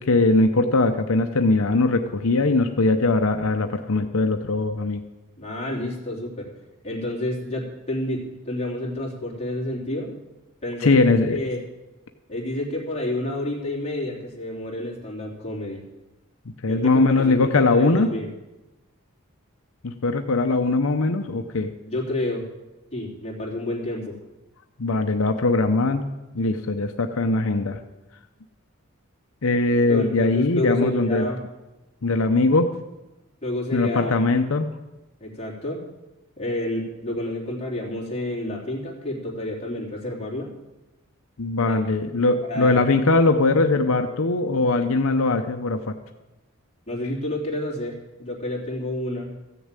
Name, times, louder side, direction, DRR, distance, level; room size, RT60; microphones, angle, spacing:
voice 1, 0.0-5.0 10.8-11.4 16.6-18.1 19.8-21.7 24.8-26.0 26.3-27.8 29.4-31.3 32.0-32.7 33.7-34.7 41.4-46.0, left 3 dB, 75° left, 6 dB, 0.8 m, -21 dB
voice 2, 5.4-6.5 6.8-10.2 10.6-11.0 11.3-11.6 12.3-15.8 16.7-18.3 21.8-22.4 22.9-24.2 29.9-31.4 33.4-34.1 35.2-35.8 36.4-40.5 41.7-41.8 42.4-42.8 46.9-49.3, left 1 dB, 30° left, -3 dB, 3.2 m, -29 dB
14.5 x 6.9 x 9.0 m, 1.0 s
head